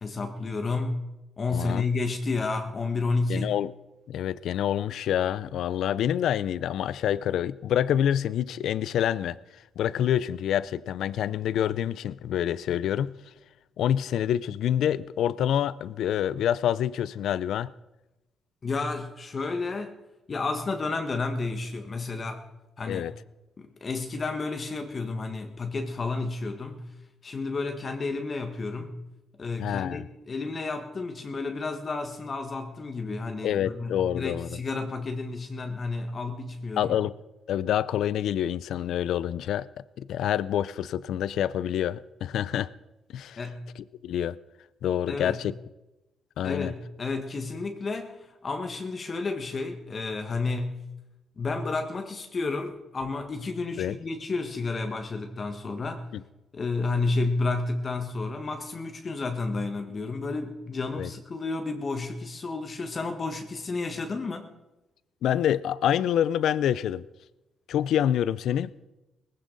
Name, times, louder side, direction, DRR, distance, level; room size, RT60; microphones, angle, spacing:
voice 1, 0.0-1.0 1.4-3.5 18.6-19.9 20.3-22.5 22.8-23.1 23.6-26.9 27.2-29.0 29.4-36.9 43.4-43.7 45.1-45.4 46.4-50.9 51.4-56.1 56.5-64.5, left 3 dB, 40° left, 1.5 m, -31 dB
voice 2, 1.5-1.9 3.3-3.7 4.1-9.4 9.8-13.1 13.8-17.7 22.9-23.1 29.6-30.0 33.4-34.6 36.8-37.1 37.5-39.7 40.0-42.7 43.1-43.4 44.0-44.4 44.8-45.5 46.4-46.7 53.8-54.0 61.0-61.1 65.2-67.0 67.7-68.7, left 10 dB, 75° left, 0.4 m, -27 dB
19.0 x 15.5 x 4.0 m
cardioid pair, 90°, 0 cm